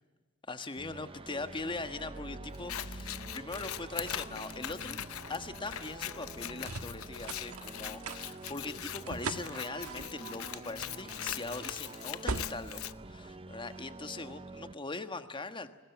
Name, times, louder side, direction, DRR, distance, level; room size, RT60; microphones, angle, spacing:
voice 1, 0.5-5.0 5.3-15.7, left 3 dB, 25° left, 9 dB, 1.4 m, -41 dB
sound 1, 0.8-14.7, right 2 dB, 25° right, 0.8 m, -48 dB
sound 2, 1.6-13.9, right 3 dB, 85° right, 1.5 m, -44 dB
Scissors, 2.5-12.9, left 11 dB, 75° left, 0.8 m, -42 dB
25.0 x 20.0 x 9.2 m, 1.3 s
head